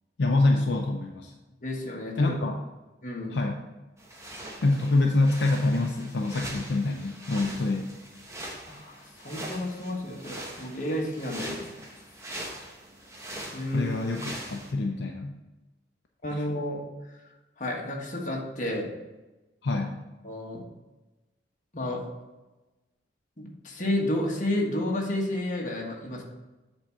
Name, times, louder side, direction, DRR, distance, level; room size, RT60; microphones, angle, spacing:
voice 1, 0.2-1.3 2.2-2.6 3.2-3.6 4.6-7.9 13.7-15.3 16.3-16.4 19.6-20.0, left 2 dB, 65° left, 2 dB, 0.5 m, -26 dB
voice 2, 1.6-2.3 3.0-3.3 8.6-11.8 13.5-13.9 16.2-16.8 17.6-18.9 20.2-20.6 21.7-22.0 23.4-26.2, left 1 dB, 40° left, -1 dB, 1.3 m, -31 dB
sound 1, 4.0-14.7, right 1 dB, 15° right, 0.9 m, -42 dB
7.6 x 3.6 x 5.6 m, 1.1 s
head